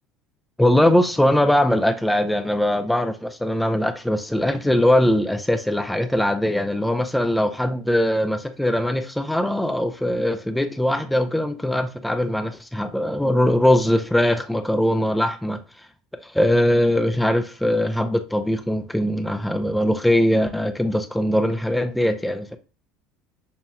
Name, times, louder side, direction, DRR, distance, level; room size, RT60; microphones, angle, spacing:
voice 1, 0.6-15.6 16.2-22.6, left 1 dB, 5° left, 0.4 m, -21 dB
5.5 x 2.9 x 2.2 m
supercardioid pair, 90°, 0 cm